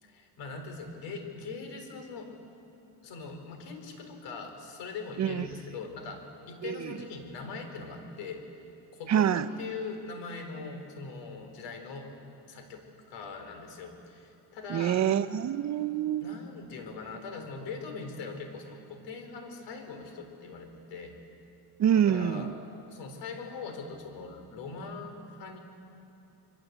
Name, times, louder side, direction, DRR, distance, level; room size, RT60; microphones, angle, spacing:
voice 1, 0.0-2.4 3.0-8.5 8.9-12.1 12.5-15.1 16.2-21.2 21.9-22.5 22.9-25.6, left 4 dB, 80° left, 5 dB, 4.1 m, -41 dB
voice 2, 6.6-6.9 9.1-9.5 14.7-16.4 21.8-22.5, right 9 dB, 40° right, 13 dB, 0.7 m, -26 dB
26.5 x 23.5 x 8.1 m, 2.8 s
cardioid pair, 140°, 42 cm